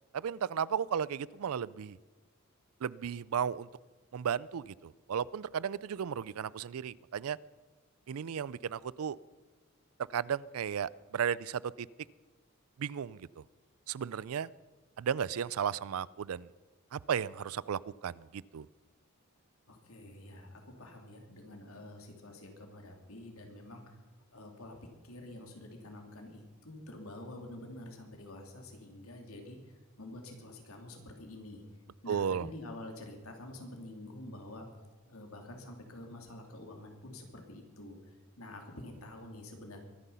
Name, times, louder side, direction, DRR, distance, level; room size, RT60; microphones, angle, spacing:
voice 1, 0.1-2.0 2.8-3.7 4.1-7.4 8.1-9.2 10.1-11.9 12.8-13.4 13.9-14.5 15.0-16.5 16.9-18.7 32.1-32.5, right 8 dB, 80° right, 22 dB, 0.4 m, -34 dB
voice 2, 19.7-23.9 24.3-24.8 25.0-31.6 32.0-34.7 35.1-39.8, left 1 dB, 80° left, 3 dB, 3.0 m, -48 dB
23.0 x 10.0 x 5.6 m, 1.3 s
head